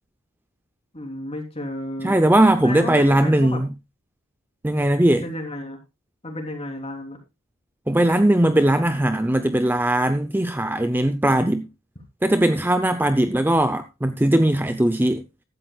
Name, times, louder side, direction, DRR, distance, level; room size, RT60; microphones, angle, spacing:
voice 1, 0.9-2.2 2.6-3.6 5.2-5.8 6.2-7.2, left 1 dB, 30° left, 3.4 m, -32 dB
voice 2, 2.0-3.7 4.6-5.2 7.9-11.7 12.2-15.2, right 1 dB, 10° right, 0.6 m, -19 dB
15.5 x 12.5 x 2.3 m
head